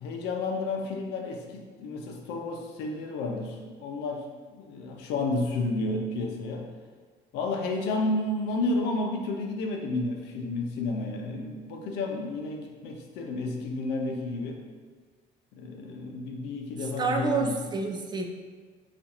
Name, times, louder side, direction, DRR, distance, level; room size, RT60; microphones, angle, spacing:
voice 1, 0.0-6.6 7.3-14.6 15.5-17.6, left 2 dB, 90° left, 2 dB, 0.6 m, -31 dB
voice 2, 17.0-18.3, right 4 dB, 25° right, 3 dB, 0.4 m, -28 dB
5.0 x 2.4 x 2.9 m, 1.5 s
cardioid pair, 110°, 17 cm